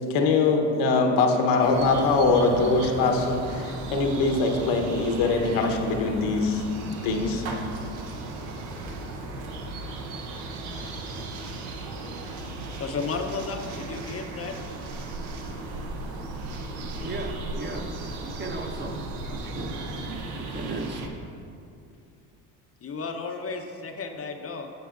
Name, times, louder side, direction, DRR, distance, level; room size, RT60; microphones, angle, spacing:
voice 1, 0.1-6.6 7.0-7.4, left 3 dB, 70° left, 3 dB, 1.0 m, -22 dB
sound 1, 1.6-21.1, right 2 dB, 80° right, 0.9 m, -36 dB
voice 2, 12.8-14.6 22.8-24.7, left 4 dB, 35° left, 5 dB, 0.7 m, -33 dB
voice 3, 17.0-17.9 18.2-19.0 19.3-21.1, right 2 dB, 25° right, 3 dB, 0.9 m, -36 dB
9.3 x 7.5 x 2.5 m, 2.5 s
supercardioid pair, 75°, 42 cm